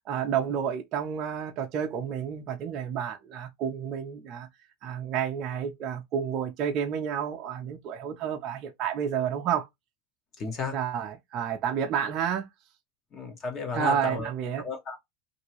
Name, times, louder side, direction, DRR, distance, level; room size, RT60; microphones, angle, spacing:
voice 1, 0.1-4.5 4.8-9.7 10.7-12.5 13.7-14.6, right 8 dB, 40° right, 0.6 m, -30 dB
voice 2, 10.4-10.8 13.1-14.3 14.6-15.0, left 4 dB, 30° left, 1.1 m, -33 dB
2.8 x 2.6 x 2.9 m
supercardioid pair, 145°, 0 cm